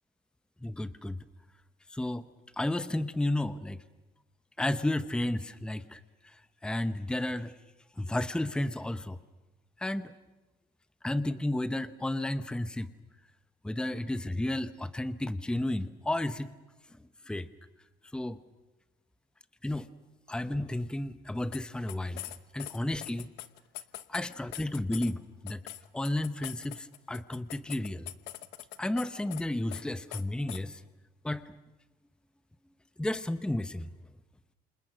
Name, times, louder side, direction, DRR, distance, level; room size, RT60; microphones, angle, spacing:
voice 1, 0.6-1.2 1.9-2.3 2.6-3.8 4.6-6.0 6.6-7.5 8.0-9.2 9.8-10.1 11.0-12.9 13.6-16.5 17.3-17.5 18.1-18.4 19.6-19.9 20.3-22.2 22.5-23.3 24.1-25.6 25.9-28.1 28.8-30.8 31.2-31.5 33.0-33.9, left 1 dB, 5° left, 12 dB, 0.8 m, -32 dB
sound 1, 21.5-21.6 21.9-25.1 25.5-29.1 29.3-29.4 29.7-29.8 30.1-30.2 30.5-30.6, left 15 dB, 85° left, 1.0 m, -42 dB
29.5 x 27.5 x 6.2 m, 1.1 s
cardioid pair, 110°, 17 cm